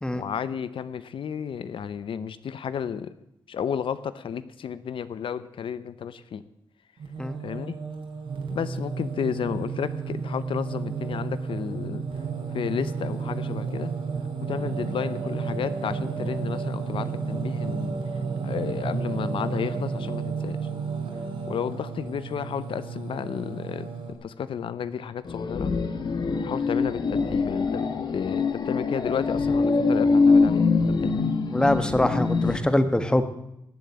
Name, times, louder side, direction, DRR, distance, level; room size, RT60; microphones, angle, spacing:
voice 1, 0.2-3.1 3.5-6.4 7.4-7.7 8.5-12.0 12.5-13.9 14.5-18.0 18.4-20.6 21.5-23.9 24.2-25.7 26.4-31.3, left 7 dB, 70° left, 14 dB, 0.7 m, -32 dB
Singing, 7.0-24.1, right 5 dB, 75° right, 3.4 m, -32 dB
sound 1, 25.3-32.6, left 4 dB, 55° left, 1.5 m, -23 dB
voice 2, 31.5-33.2, left 1 dB, 10° left, 10 dB, 1.2 m, -23 dB
19.0 x 7.6 x 8.5 m, 0.85 s
wide cardioid pair, 135°, 9 cm